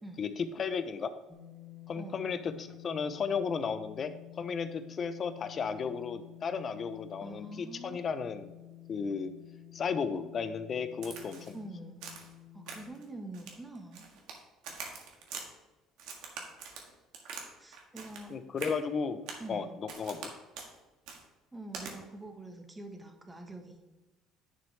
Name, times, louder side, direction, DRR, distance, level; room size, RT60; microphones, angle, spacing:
voice 1, 0.2-1.1 1.9-4.1 4.4-8.5 8.9-9.3 9.7-11.6 18.3-19.2 19.5-20.3, left 6 dB, 40° left, 11 dB, 0.7 m, -34 dB
sound 1, 1.3-12.9, left 14 dB, 10° left, 1.5 m, -51 dB
voice 2, 7.2-8.1 11.5-12.1 12.5-14.1 17.6-18.4 19.4-19.8 21.5-23.8, right 2 dB, 15° right, 4 dB, 1.3 m, -45 dB
Crack, 11.0-11.6 12.0-12.3 12.7-13.0 13.3-14.4 14.6-15.5 16.0-17.5 17.7-18.3 18.6-18.8 19.3-19.5 19.9-20.3 20.6-20.7 21.1-21.2 21.7-21.9, right 5 dB, 80° right, 1.6 m, -43 dB
10.5 x 6.2 x 3.3 m, 1.1 s
cardioid pair, 110°, 0 cm